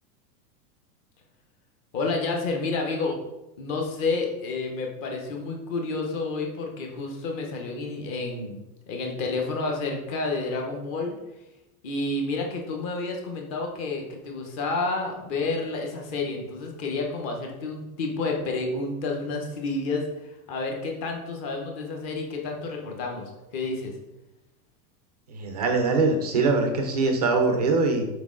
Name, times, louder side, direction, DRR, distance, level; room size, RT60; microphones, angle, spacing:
voice 1, 1.9-3.2 3.6-8.6 8.9-11.1 11.8-20.1 20.5-23.9, left 3 dB, 25° left, 2 dB, 0.7 m, -30 dB
voice 2, 25.3-28.0, right 3 dB, 30° right, 4 dB, 0.4 m, -23 dB
6.0 x 4.5 x 3.7 m, 0.94 s
supercardioid pair, 175°, 46 cm